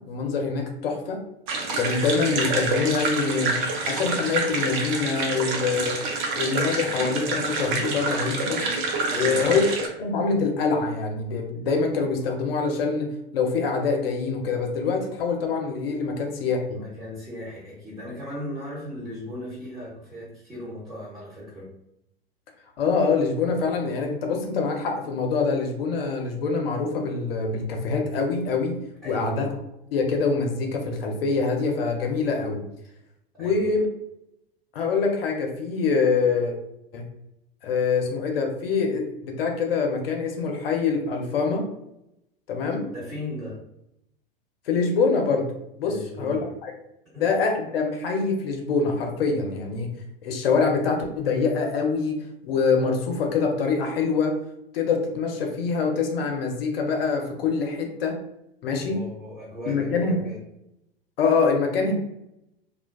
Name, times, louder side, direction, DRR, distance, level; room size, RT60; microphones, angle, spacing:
voice 1, 0.1-1.2 1.7-3.6 3.8-6.0 6.4-8.6 9.1-9.6 10.0-13.1 13.3-16.8 22.8-28.8 29.0-29.5 29.9-32.6 33.4-33.9 34.7-36.6 36.9-37.1 37.6-41.6 42.5-42.8 44.7-45.5 45.8-46.7 47.2-49.9 50.2-52.2 52.4-54.3 54.7-58.2 58.6-59.0 59.7-60.3 61.2-61.9, left 4 dB, 75° left, 2 dB, 0.7 m, -25 dB
sound 1, 1.5-9.9, right 3 dB, 55° right, 0.6 m, -27 dB
voice 2, 9.1-9.7 16.7-21.7 29.0-29.5 33.3-33.7 42.8-43.6 45.9-46.5 47.1-47.3 58.8-60.4, left 1 dB, 10° right, -10 dB, 1.0 m, -37 dB
2.4 x 2.2 x 2.3 m, 0.82 s
hypercardioid pair, 90°, 30 cm